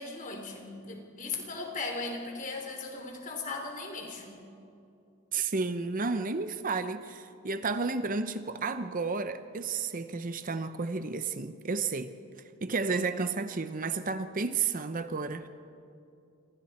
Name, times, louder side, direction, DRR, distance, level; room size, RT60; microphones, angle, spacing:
voice 1, 0.0-4.4, left 3 dB, 40° left, 2 dB, 3.5 m, -38 dB
voice 2, 5.3-12.1 12.6-15.5, right 4 dB, 40° right, 10 dB, 0.7 m, -32 dB
27.5 x 26.0 x 4.4 m, 2.6 s
head